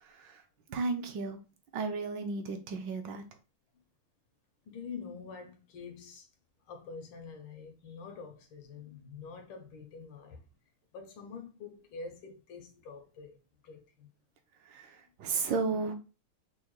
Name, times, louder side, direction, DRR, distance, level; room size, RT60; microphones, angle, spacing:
voice 1, 0.7-1.4 1.7-3.2 14.7-15.9, right 4 dB, 70° right, 1.3 m, -33 dB
voice 2, 4.7-6.3 6.7-10.4 10.9-14.1, left 5 dB, 90° left, 1.8 m, -46 dB
5.6 x 2.2 x 3.1 m
omnidirectional pair, 2.2 m